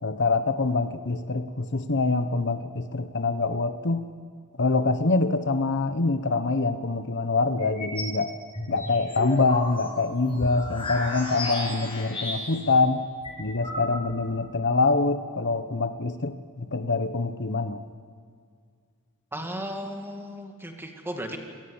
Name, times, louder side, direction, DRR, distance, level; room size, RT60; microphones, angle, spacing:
voice 1, 0.0-4.0 4.6-8.3 8.7-13.0 13.4-17.8, left 3 dB, 55° left, 10 dB, 1.1 m, -25 dB
sound 1, 7.6-8.2 8.5-12.7 13.0-13.1 13.2-14.2, left 2 dB, 25° left, 6.1 m, -33 dB
voice 2, 19.3-21.4, equal, 10° right, 3 dB, 2.2 m, -35 dB
26.5 x 18.5 x 7.2 m, 2.2 s
head